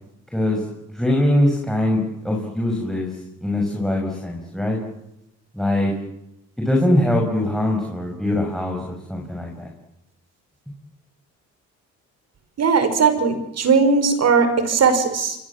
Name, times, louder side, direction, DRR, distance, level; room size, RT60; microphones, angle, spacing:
voice 1, 0.3-0.7 0.9-4.8 5.5-5.9 6.6-9.7, left 1 dB, ahead, 1 dB, 6.5 m, -22 dB
voice 2, 12.6-15.4, right 5 dB, 55° right, 9 dB, 5.8 m, -18 dB
27.5 x 22.5 x 7.5 m, 0.85 s
cardioid pair, 90°, 30 cm